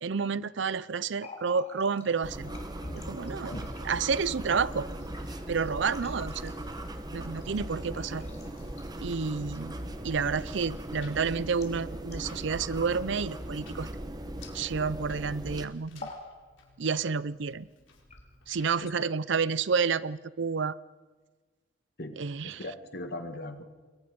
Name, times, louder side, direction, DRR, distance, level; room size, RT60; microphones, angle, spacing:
voice 1, 0.0-2.5 2.9-3.5 3.8-4.9 5.5-6.5 7.1-8.2 9.0-13.9 14.5-16.1 16.8-17.7 18.5-20.8 22.2-22.6, right 5 dB, 70° right, 19 dB, 0.6 m, -30 dB
Water tap faucet, 1.0-15.0 15.3-15.5 15.9-16.3 16.6-17.3 17.9-18.7, left 2 dB, 35° left, 3.7 m, -50 dB
sound 1, 2.2-15.6, right 1 dB, 20° right, 1.1 m, -39 dB
sound 2, 5.5-18.8, left 3 dB, 85° left, 4.6 m, -61 dB
voice 2, 22.4-23.6, left 1 dB, 55° left, 8 dB, 1.8 m, -39 dB
28.5 x 22.0 x 5.4 m, 1.4 s
head